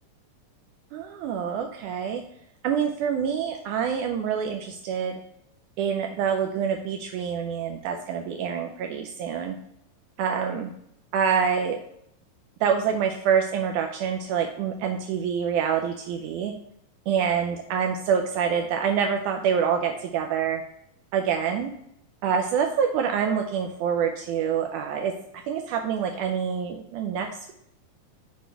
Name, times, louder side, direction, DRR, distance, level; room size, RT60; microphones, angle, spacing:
voice 1, 0.9-2.2 2.6-5.2 5.8-9.6 10.2-10.7 11.1-11.8 12.6-16.5 17.1-20.6 21.1-21.7 22.2-25.1 25.5-27.5, right 7 dB, 80° right, 4 dB, 1.9 m, -26 dB
8.1 x 3.1 x 4.5 m, 0.74 s
omnidirectional pair, 3.9 m